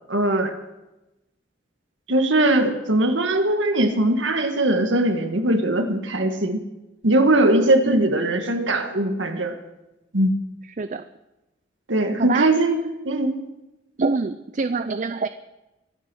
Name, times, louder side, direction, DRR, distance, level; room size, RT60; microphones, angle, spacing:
voice 1, 0.1-0.5 2.1-6.6 7.0-9.6 10.1-10.3 11.9-13.4, right 1 dB, 75° right, 6 dB, 1.8 m, -20 dB
voice 2, 7.8-8.2 10.8-11.0 12.2-12.5 14.0-15.3, right 4 dB, 40° right, 11 dB, 0.5 m, -25 dB
23.5 x 8.5 x 6.3 m, 1.0 s
head